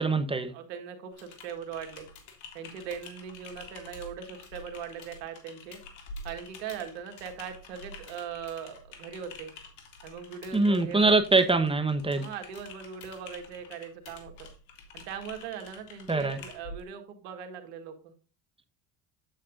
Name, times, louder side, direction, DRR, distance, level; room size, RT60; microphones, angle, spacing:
voice 1, 0.0-0.5 10.5-12.3 16.1-16.4, right 3 dB, 10° right, 1.0 m, -23 dB
voice 2, 0.5-2.1 2.5-5.8 6.2-9.5 10.0-11.2 12.2-14.5 14.9-18.1, right 7 dB, 90° right, 1.7 m, -40 dB
Typing, 1.1-16.8, left 3 dB, 75° left, 2.2 m, -48 dB
9.0 x 7.9 x 2.5 m
supercardioid pair, 85°, 48 cm